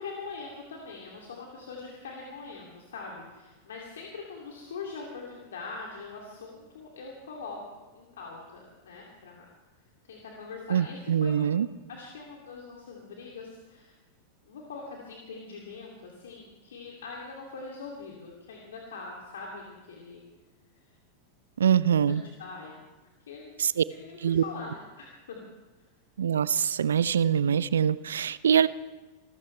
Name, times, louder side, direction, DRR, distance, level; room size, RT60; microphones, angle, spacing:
voice 1, 0.0-7.6 7.9-9.5 10.0-11.5 11.9-14.0 14.4-20.2 21.8-22.8 23.3-25.4, left 4 dB, 75° left, -2 dB, 2.7 m, -42 dB
voice 2, 10.7-11.7 21.6-22.2 23.6-23.8 24.2-24.4 26.2-28.7, right 8 dB, 75° right, 18 dB, 0.4 m, -24 dB
25.5 x 14.5 x 3.3 m, 1.2 s
hypercardioid pair, 95°, 0 cm